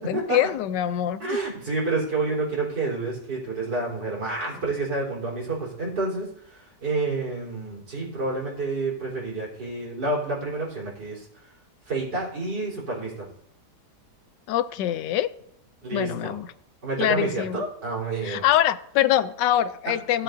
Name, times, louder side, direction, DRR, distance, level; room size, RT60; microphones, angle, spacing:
voice 1, 0.0-1.4 14.5-15.3 15.9-16.5 17.0-17.6 18.2-20.2, left 12 dB, 90° left, 14 dB, 1.2 m, -24 dB
voice 2, 1.2-11.3 11.9-13.3 15.8-16.3 16.8-18.5 20.1-20.2, right 3 dB, 75° right, -4 dB, 4.4 m, -29 dB
17.0 x 7.7 x 2.6 m, 0.71 s
omnidirectional pair, 1.8 m